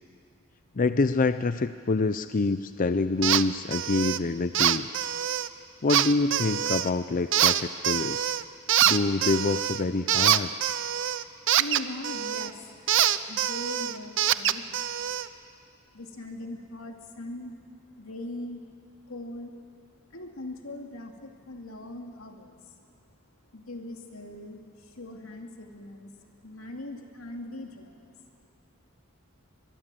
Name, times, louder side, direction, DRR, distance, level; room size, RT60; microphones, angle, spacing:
voice 1, 0.8-4.9 5.8-8.3 8.8-10.5, left 3 dB, 40° left, 11 dB, 0.5 m, -26 dB
sound 1, 3.2-3.4 3.7-4.2 4.5-5.5 5.9-6.9 7.3-8.4 8.7-12.5 12.9-15.3, right 11 dB, 65° right, 0.6 m, -25 dB
voice 2, 11.5-15.0 15.9-17.6 18.0-18.6 19.1-19.6 20.1-22.7 23.5-26.1 26.4-28.1, left 2 dB, 85° left, 3 dB, 2.5 m, -41 dB
22.5 x 22.0 x 7.6 m, 2.3 s
head